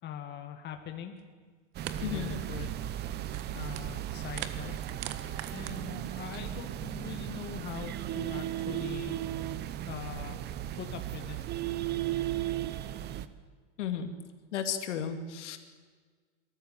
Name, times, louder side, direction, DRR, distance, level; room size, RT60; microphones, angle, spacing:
voice 1, 0.0-1.2 2.0-2.8 3.5-4.8 5.5-9.1 9.9-10.4 10.8-11.4, left 8 dB, 30° left, 5 dB, 2.2 m, -42 dB
sound 1, 1.2-1.3 1.8-2.0 2.2-2.5 2.9-4.0 4.3-5.7, right 12 dB, 45° right, 1.5 m, -41 dB
sound 2, 1.7-13.3, right 12 dB, 30° right, 0.9 m, -36 dB
voice 2, 2.0-2.4 13.8-14.1 14.5-15.6, left 8 dB, 75° left, 7 dB, 2.6 m, -34 dB
23.0 x 14.0 x 9.4 m, 1.5 s
supercardioid pair, 135°, 36 cm